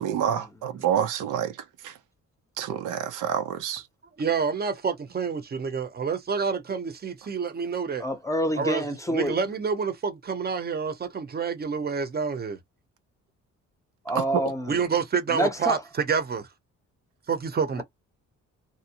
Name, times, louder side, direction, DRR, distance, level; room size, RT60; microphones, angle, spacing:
voice 1, 0.0-1.6 1.8-2.0 2.6-3.8 14.1-14.4, right 9 dB, 90° right, 0.7 m, -27 dB
voice 2, 4.2-8.1 8.5-12.6 14.7-16.5 17.3-17.8, right 5 dB, 30° right, 0.7 m, -28 dB
voice 3, 8.0-9.3 14.1-14.8 15.3-15.8 17.8-17.9, equal, 10° left, 0.6 m, -27 dB
2.6 x 2.0 x 2.8 m
cardioid pair, 105°, 30 cm